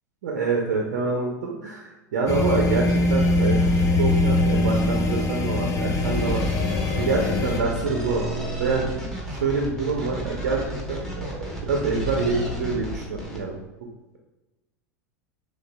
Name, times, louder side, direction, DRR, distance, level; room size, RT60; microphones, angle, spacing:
voice 1, 0.2-3.7 4.0-6.4 6.7-8.9 9.3-13.6, right 4 dB, 70° right, 1 dB, 0.6 m, -26 dB
sound 1, 2.3-7.6, left 2 dB, 35° left, 0.5 m, -22 dB
sound 2, 6.0-13.4, right 1 dB, 5° left, 1.2 m, -32 dB
6.2 x 2.4 x 2.2 m, 1.1 s
hypercardioid pair, 90°, 9 cm